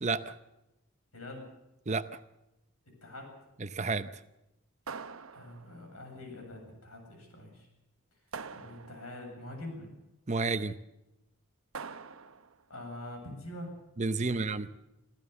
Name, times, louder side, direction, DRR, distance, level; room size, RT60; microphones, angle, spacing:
voice 1, 0.0-0.3 1.9-2.1 3.6-4.1 10.3-10.7 14.0-14.7, right 3 dB, 35° right, 12 dB, 0.7 m, -30 dB
voice 2, 1.1-1.5 3.0-3.4 5.3-7.7 8.5-10.0 12.7-13.8 14.2-14.5, left 1 dB, 85° left, 3 dB, 7.9 m, -44 dB
sound 1, 4.9-5.9 8.3-9.3 11.7-12.6, right 5 dB, 75° right, 0.9 m, -44 dB
25.5 x 14.5 x 7.0 m, 0.91 s
head